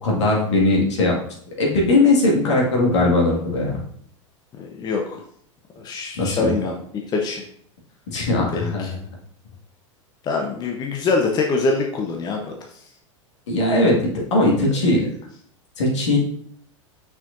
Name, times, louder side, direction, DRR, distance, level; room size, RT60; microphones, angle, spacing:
voice 1, 0.0-1.2 1.6-3.8 6.2-6.5 8.1-8.9 13.5-15.0 15.8-16.2, left 2 dB, 65° left, -2 dB, 2.0 m, -19 dB
voice 2, 4.6-5.2 5.8-7.4 8.5-8.9 10.2-12.4 12.7-12.8 14.9-15.1, left 3 dB, 25° left, 2 dB, 0.7 m, -24 dB
6.0 x 5.8 x 2.6 m, 0.65 s
figure-of-eight pair, 90°, 16 cm